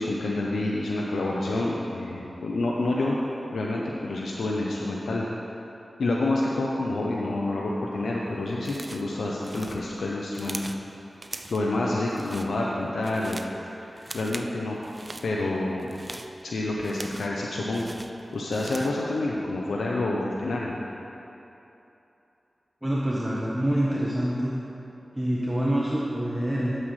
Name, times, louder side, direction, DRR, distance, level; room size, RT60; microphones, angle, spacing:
voice 1, 0.0-3.2 3.5-5.2 6.0-10.7 11.5-13.5 13.9-14.8 15.2-16.0 16.4-17.9 18.3-20.8, left 2 dB, 85° left, -3 dB, 0.7 m, -28 dB
sound 1, 8.6-9.1 9.4-10.8 11.2-11.7 12.1-12.5 12.9-13.6 14.0-14.5 14.8-15.3 15.8-17.4 17.7-19.0, right 2 dB, 35° right, 0.5 m, -41 dB
voice 2, 22.8-24.5 25.1-26.7, right 1 dB, 15° right, -6 dB, 1.2 m, -26 dB
12.5 x 7.6 x 3.2 m, 2.9 s
cardioid pair, 40°, 0 cm